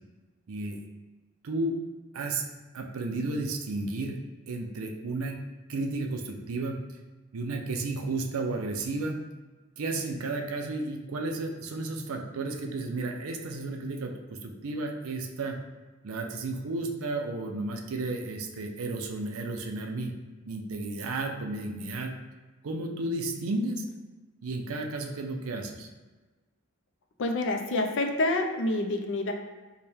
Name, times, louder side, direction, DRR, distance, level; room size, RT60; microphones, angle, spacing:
voice 1, 0.5-0.8 1.4-1.8 2.1-2.4 2.7-4.2 4.5-5.4 5.7-6.8 7.3-9.2 9.8-15.6 16.0-20.1 20.5-22.1 22.6-23.8 24.4-25.9, right 2 dB, 70° right, 3 dB, 0.5 m, -33 dB
voice 2, 27.2-29.3, left 2 dB, 60° left, 5 dB, 0.4 m, -27 dB
4.4 x 2.2 x 3.4 m, 1.2 s
head